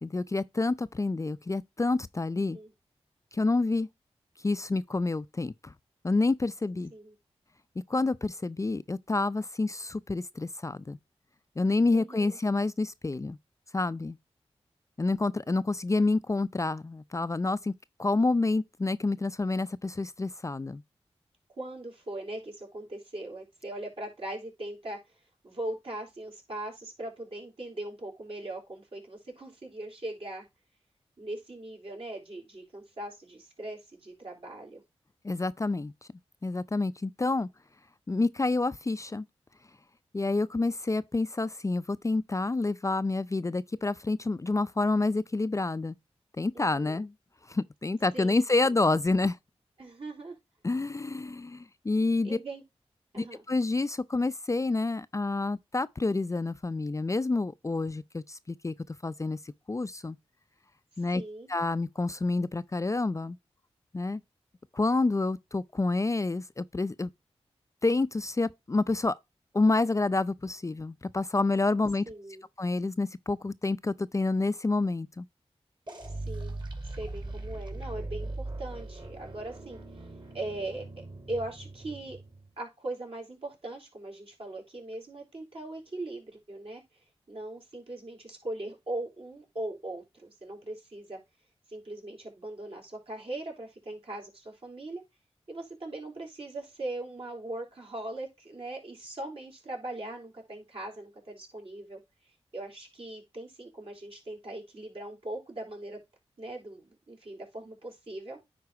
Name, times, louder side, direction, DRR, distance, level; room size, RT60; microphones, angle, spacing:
voice 1, 0.0-2.6 3.3-3.9 4.4-5.7 6.0-6.9 7.9-11.0 11.6-13.4 13.7-14.2 15.0-17.7 18.0-20.8 35.2-35.9 36.4-37.5 38.1-39.3 40.1-45.9 46.4-47.1 47.5-49.4 50.6-52.4 53.2-58.7 59.0-59.4 59.7-60.2 61.0-61.2 61.5-63.4 63.9-64.2 64.7-67.1 67.8-69.2 69.5-72.1 72.6-75.3, left 3 dB, 30° left, 0.4 m, -28 dB
voice 2, 2.4-2.7 6.9-7.1 11.9-12.4 21.6-25.0 25.4-30.5 31.2-34.8 46.5-47.0 48.1-48.5 49.8-50.3 52.2-52.6 53.1-53.4 61.1-61.5 72.1-72.4 76.2-76.6 77.0-79.8 80.3-82.2 82.6-86.8 87.3-91.2 91.7-95.0 95.5-102.0 102.5-106.0 106.4-108.4, right 2 dB, 60° right, 3.9 m, -40 dB
sound 1, 75.9-82.5, right 2 dB, 40° right, 2.8 m, -40 dB
9.7 x 4.0 x 4.6 m
cardioid pair, 45°, 11 cm